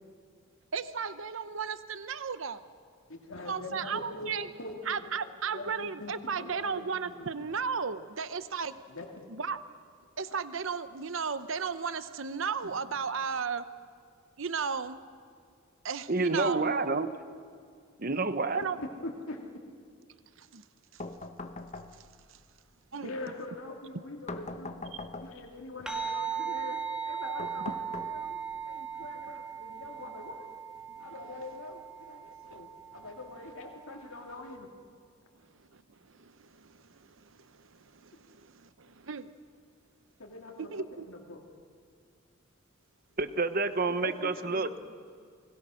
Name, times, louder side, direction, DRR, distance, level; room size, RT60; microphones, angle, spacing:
voice 1, 0.7-2.6 3.5-4.5 4.9-8.8 9.3-9.6 10.2-13.6 14.4-15.0 15.8-16.7 18.5-18.8 20.4-20.6 20.9-21.0 22.9-23.1 24.9-25.1 31.0-31.1 35.7-35.8 36.2-37.1 37.4-39.3 40.6-41.1, right 5 dB, 65° right, 13 dB, 0.8 m, -35 dB
voice 2, 3.1-7.5 8.9-9.1 19.0-19.4 23.0-24.8 25.2-30.5 31.0-34.7 40.2-41.4 43.8-44.8, left 2 dB, 75° left, 0 dB, 2.5 m, -43 dB
voice 3, 16.1-17.1 18.0-18.6 43.2-44.7, right 3 dB, 45° right, 11 dB, 1.1 m, -28 dB
sound 1, 21.0-22.3 24.3-25.6 27.4-28.6, left 2 dB, 30° left, 1.1 m, -42 dB
sound 2, 25.9-34.5, right 7 dB, 5° right, 1.9 m, -39 dB
29.5 x 21.0 x 6.4 m, 2.2 s
head